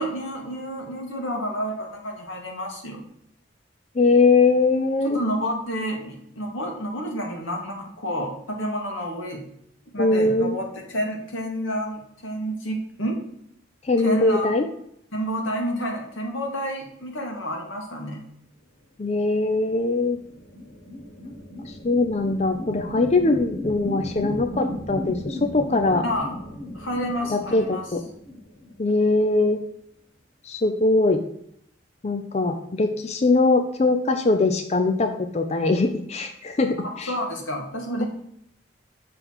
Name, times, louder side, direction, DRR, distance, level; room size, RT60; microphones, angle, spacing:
voice 1, 0.0-3.0 5.0-9.4 9.9-13.2 14.0-14.5 15.1-18.2 26.0-26.3 26.7-27.8 36.8-38.1, equal, 90° left, 1 dB, 1.8 m, -29 dB
voice 2, 3.9-5.2 10.0-10.6 13.8-14.7 19.0-20.2 21.7-26.0 27.3-28.0 28.8-29.6 30.4-31.2 32.0-37.1, left 3 dB, 35° left, 6 dB, 0.5 m, -21 dB
sound 1, 19.4-29.2, left 1 dB, 50° left, 1.4 m, -36 dB
6.8 x 3.9 x 6.1 m, 0.72 s
head